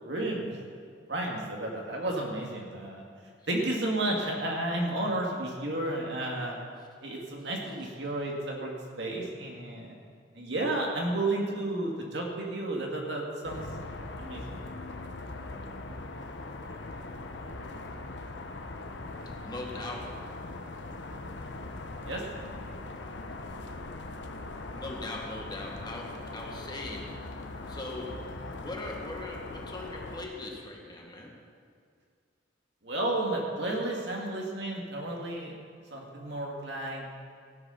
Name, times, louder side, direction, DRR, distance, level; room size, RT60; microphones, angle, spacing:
voice 1, 0.0-0.5 1.1-3.0 3.5-6.6 7.0-9.9 10.4-13.6 14.2-14.6 22.1-22.2 32.8-35.5 35.9-37.0, right 1 dB, 70° right, -1 dB, 2.3 m, -32 dB
voice 2, 1.8-2.2 19.4-20.2 24.7-27.2 27.7-28.2 28.6-31.3, left 2 dB, 25° left, 0 dB, 1.7 m, -40 dB
sound 1, 13.4-30.3, left 2 dB, 70° left, 1.0 m, -41 dB
15.5 x 8.3 x 5.8 m, 2.1 s
head